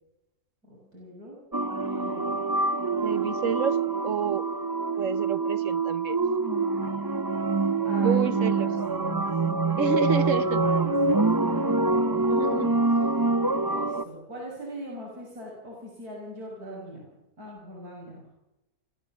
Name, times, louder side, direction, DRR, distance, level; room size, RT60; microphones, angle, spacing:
voice 1, 0.6-1.4 1.7-2.4 7.8-9.7 10.2-11.7 13.6-18.3, equal, 75° right, -3 dB, 6.8 m, -41 dB
sound 1, 1.5-14.0, right 3 dB, 20° right, 0.6 m, -25 dB
voice 2, 3.0-4.5 5.0-6.2 8.0-8.7 9.8-10.6 12.3-12.7, right 7 dB, 60° right, 13 dB, 1.3 m, -29 dB
28.5 x 15.0 x 7.3 m, 0.98 s
omnidirectional pair, 1.6 m